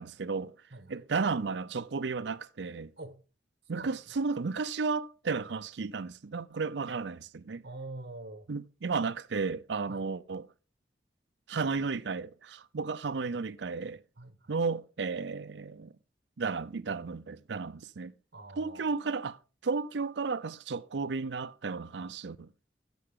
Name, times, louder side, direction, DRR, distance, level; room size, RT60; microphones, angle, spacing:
voice 1, 0.0-0.5 0.9-2.9 3.7-7.6 8.5-10.5 11.5-14.0 14.5-15.9 16.4-18.1 18.6-22.5, right 4 dB, 80° right, 0.5 m, -33 dB
voice 2, 0.7-1.0 3.0-3.2 3.7-4.0 7.6-8.5 9.9-10.0 13.2-13.3 14.2-14.5 18.3-18.9, right 2 dB, 60° right, 1.3 m, -45 dB
15.5 x 6.0 x 3.7 m
head